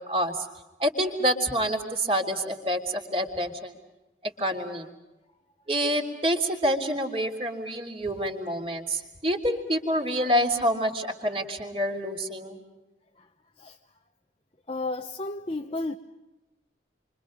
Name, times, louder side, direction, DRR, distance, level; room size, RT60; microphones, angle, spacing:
voice 1, 0.1-0.5 0.8-3.7 4.2-4.9 5.7-12.6, equal, 30° right, 2 dB, 3.3 m, -27 dB
voice 2, 14.7-16.0, left 2 dB, 30° left, 2 dB, 0.9 m, -32 dB
29.0 x 25.0 x 5.2 m, 1.1 s
head